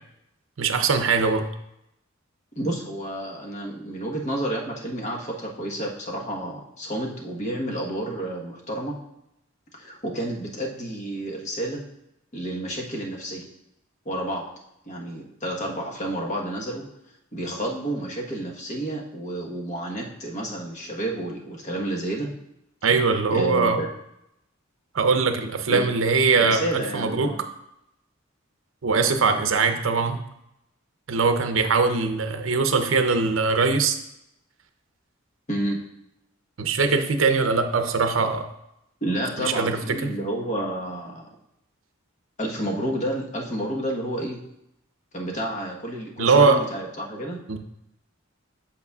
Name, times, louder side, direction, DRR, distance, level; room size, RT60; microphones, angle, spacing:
voice 1, 0.6-1.5 22.8-23.8 24.9-27.3 28.8-30.2 31.1-34.0 36.6-38.5 39.4-40.1 46.2-46.6 47.5-47.6, right 4 dB, 70° right, 7 dB, 0.6 m, -21 dB
voice 2, 2.6-9.0 9.8-11.8 12.3-13.4 14.0-14.5 14.9-16.8 17.3-22.3 23.3-23.9 25.7-25.8 26.4-27.4 35.5-35.8 39.0-41.2 42.4-44.4 45.1-47.4, right 1 dB, 35° left, -1 dB, 1.2 m, -30 dB
8.0 x 6.6 x 2.4 m, 0.83 s
head